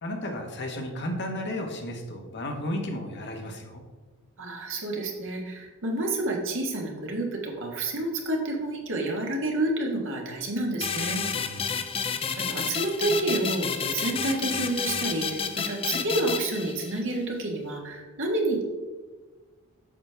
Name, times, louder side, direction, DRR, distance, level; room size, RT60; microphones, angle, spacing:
voice 1, 0.0-3.8 11.4-11.7, left 1 dB, 50° left, 2 dB, 1.2 m, -33 dB
voice 2, 4.4-11.2 12.4-18.6, right 2 dB, 60° right, 1 dB, 1.4 m, -29 dB
sound 1, 10.8-17.2, left 6 dB, 25° left, 0.4 m, -30 dB
8.7 x 6.1 x 3.4 m, 1.3 s
head